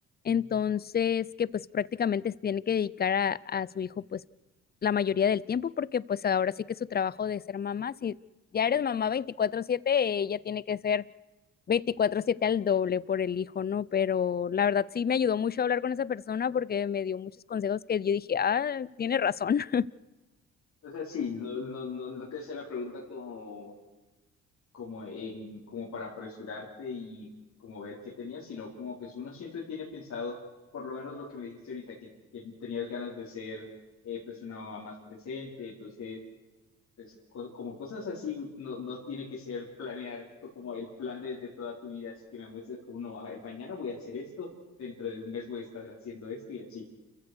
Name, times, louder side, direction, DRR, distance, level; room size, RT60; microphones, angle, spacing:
voice 1, 0.2-4.2 4.8-8.2 8.5-11.0 11.7-19.9, left 7 dB, 30° left, 22 dB, 0.6 m, -28 dB
voice 2, 20.8-23.7 24.7-27.3 27.6-30.4 30.7-32.1 32.3-33.7 34.0-36.2 37.0-44.5 44.8-46.8, left 5 dB, 65° left, -5 dB, 4.9 m, -39 dB
29.0 x 15.5 x 6.4 m, 1.1 s
cardioid pair, 90°, 30 cm